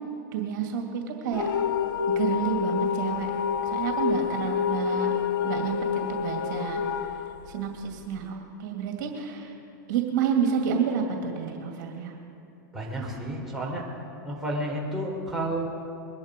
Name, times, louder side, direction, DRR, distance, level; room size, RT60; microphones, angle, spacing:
voice 1, 0.3-1.5 2.2-3.3 3.6-5.1 5.4-7.0 7.5-9.6 9.9-12.1, right 7 dB, 65° right, 2 dB, 2.2 m, -29 dB
sound 1, 1.3-8.2, left 7 dB, 90° left, 0.8 m, -28 dB
voice 2, 12.7-13.8 14.2-15.6, right 1 dB, 5° right, -4 dB, 3.9 m, -31 dB
22.0 x 11.0 x 5.2 m, 2.9 s
hypercardioid pair, 125°, 11 cm